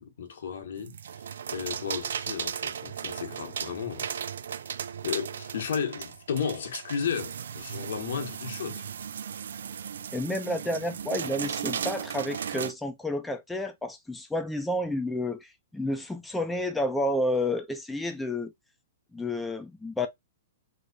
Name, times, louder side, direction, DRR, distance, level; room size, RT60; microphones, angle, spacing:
voice 1, 0.0-4.1 5.0-8.9, left 7 dB, 75° left, 1.2 m, -34 dB
sound 1, 0.8-12.7, right 8 dB, 85° right, 0.4 m, -36 dB
voice 2, 10.1-18.5 19.1-20.1, left 1 dB, 5° left, 0.4 m, -30 dB
3.1 x 2.1 x 3.9 m
hypercardioid pair, 150°, 0 cm